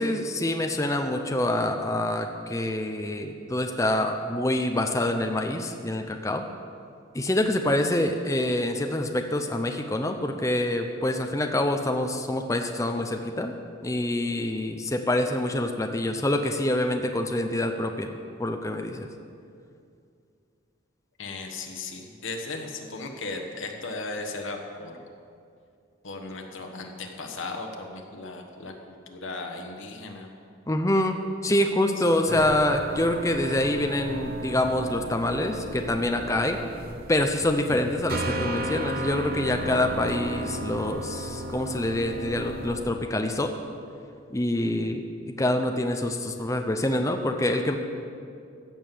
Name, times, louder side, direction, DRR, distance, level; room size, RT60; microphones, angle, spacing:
voice 1, 0.0-6.4 7.1-13.5 13.8-18.1 18.4-19.1 30.7-31.2 31.4-36.6 37.1-43.5 44.3-45.0 45.4-47.8, left 1 dB, 15° left, 5 dB, 0.6 m, -26 dB
voice 2, 21.2-25.1 26.0-30.3 32.0-32.1, left 3 dB, 80° left, 2 dB, 1.3 m, -36 dB
sound 1, 32.3-42.8, right 1 dB, 45° right, 0.8 m, -34 dB
15.0 x 5.3 x 7.6 m, 2.4 s
head